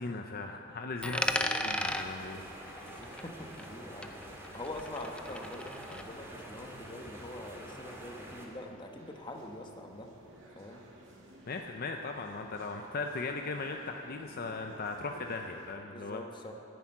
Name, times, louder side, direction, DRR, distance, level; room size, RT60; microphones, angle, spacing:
voice 1, 0.0-2.4 11.5-16.2, left 3 dB, 45° left, 4 dB, 0.6 m, -38 dB
Coin (dropping), 1.0-3.8 4.0-6.0, left 1 dB, 5° left, 0.6 m, -36 dB
voice 2, 1.4-1.9 2.2-2.5 2.8-4.2 4.5-10.1 10.6-10.8 15.9-16.5, left 1 dB, 25° left, 3 dB, 1.2 m, -44 dB
sound 1, 1.6-8.5, right 1 dB, 10° right, 1.9 m, -47 dB
sound 2, 8.4-15.7, right 1 dB, 65° right, 2.2 m, -55 dB
11.0 x 10.5 x 9.2 m, 2.9 s
head